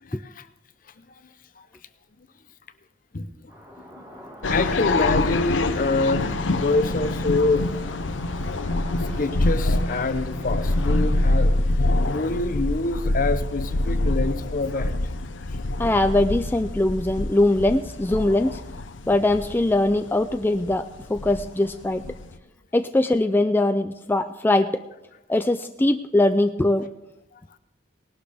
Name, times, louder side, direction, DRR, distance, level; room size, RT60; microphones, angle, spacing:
voice 1, 0.0-0.5 3.1-3.3 4.5-7.9 8.9-14.9, left 2 dB, 45° left, 12 dB, 0.7 m, -26 dB
sound 1, 3.5-11.0, equal, 15° right, 1.8 m, -44 dB
sound 2, 4.4-22.4, left 2 dB, 90° left, 0.7 m, -25 dB
voice 2, 15.8-18.6 19.1-22.0 22.7-24.8 25.3-26.9, left 2 dB, 10° left, 8 dB, 0.3 m, -21 dB
19.0 x 11.5 x 3.5 m, 0.95 s
head